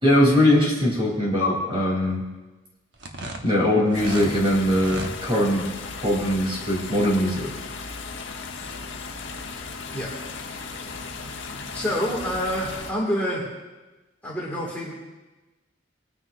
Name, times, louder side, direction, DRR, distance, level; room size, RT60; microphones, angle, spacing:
voice 1, 0.0-2.2 3.4-5.6 6.0-7.5, left 1 dB, 25° right, -3 dB, 3.2 m, -21 dB
sound 1, 2.9-4.3 4.7-5.1, right 2 dB, 60° right, 1.1 m, -34 dB
sound 2, 3.9-12.9, left 4 dB, 70° left, 1.0 m, -36 dB
voice 2, 11.7-13.5 14.2-14.9, equal, 10° left, -6 dB, 2.1 m, -27 dB
24.5 x 9.6 x 2.6 m, 1.2 s
head